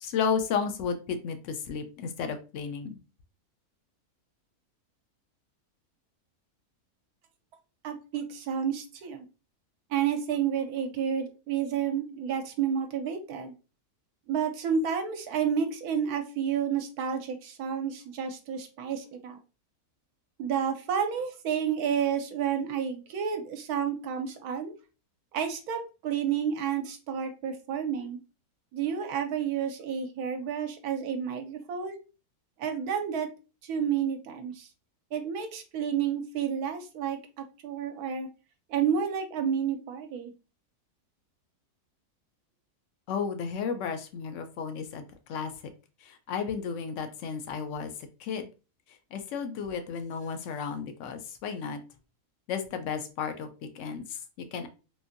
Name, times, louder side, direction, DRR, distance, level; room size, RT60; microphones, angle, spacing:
voice 1, 0.0-3.0 43.1-45.5 46.0-47.9 48.2-48.5 49.1-51.8 52.5-53.5 53.7-54.2 54.5-54.7, left 6 dB, 70° left, 7 dB, 0.8 m, -33 dB
voice 2, 7.8-9.3 9.9-13.5 14.3-19.4 20.4-24.7 25.3-28.2 28.7-32.0 32.6-33.3 33.6-34.7 35.1-38.3 38.7-40.3, right 8 dB, 80° right, 6 dB, 1.1 m, -30 dB
3.7 x 2.5 x 2.5 m, 0.32 s
omnidirectional pair, 1.6 m